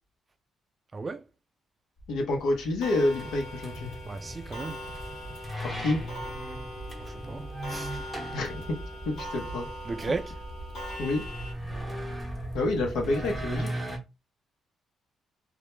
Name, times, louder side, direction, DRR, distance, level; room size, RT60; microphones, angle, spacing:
voice 1, 0.9-1.2 4.0-4.8 7.0-8.1 9.8-10.3, right 3 dB, 30° right, 0.3 m, -36 dB
sound 1, 2.0-13.6, right 1 dB, 45° left, 0.7 m, -44 dB
voice 2, 2.1-3.9 5.6-6.0 8.3-8.8 9.1-9.7 11.0-11.2 12.5-13.7, left 2 dB, 80° left, 0.7 m, -28 dB
Clock, 2.8-11.5, equal, 60° left, 1.1 m, -41 dB
sound 2, 3.1-14.0, right 1 dB, 5° left, 0.8 m, -39 dB
2.1 x 2.1 x 3.0 m
cardioid pair, 90°, 0 cm